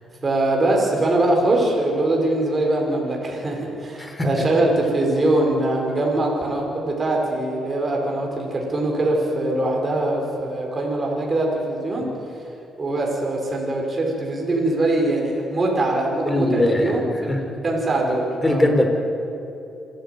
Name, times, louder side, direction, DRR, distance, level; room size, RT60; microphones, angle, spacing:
voice 1, 0.2-12.1 12.8-18.7, right 2 dB, 30° right, -1 dB, 5.2 m, -22 dB
voice 2, 4.0-4.4 12.0-12.1 16.3-17.0 17.3-17.4 18.4-18.9, left 1 dB, 15° left, 4 dB, 3.9 m, -21 dB
27.0 x 12.0 x 9.3 m, 2.9 s
cardioid pair, 90°, 0 cm